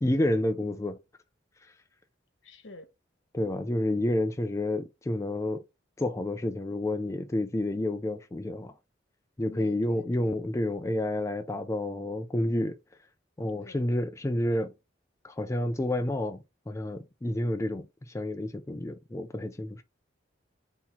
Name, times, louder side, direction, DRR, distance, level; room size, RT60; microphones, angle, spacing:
voice 1, 0.0-1.0 3.3-5.6 6.0-8.7 9.4-12.8 13.4-14.7 15.2-16.4 16.7-19.8, left 1 dB, 15° left, 0.3 m, -29 dB
voice 2, 2.4-2.9 9.5-10.3 13.6-13.8, left 2 dB, 75° left, 1.0 m, -48 dB
4.1 x 2.9 x 4.2 m
head